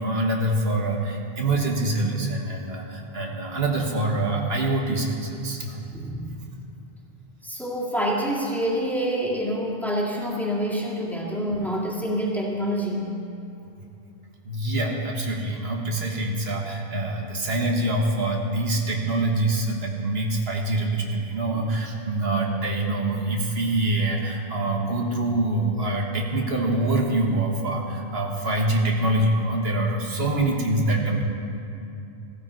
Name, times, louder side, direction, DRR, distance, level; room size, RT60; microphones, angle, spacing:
voice 1, 0.0-5.9 11.5-11.6 14.4-31.2, right 2 dB, 75° right, 0 dB, 1.6 m, -25 dB
voice 2, 5.9-6.3 7.4-13.1 16.5-16.6 21.5-21.6, equal, ahead, -4 dB, 2.1 m, -27 dB
15.0 x 14.0 x 4.4 m, 2.7 s
omnidirectional pair, 1.0 m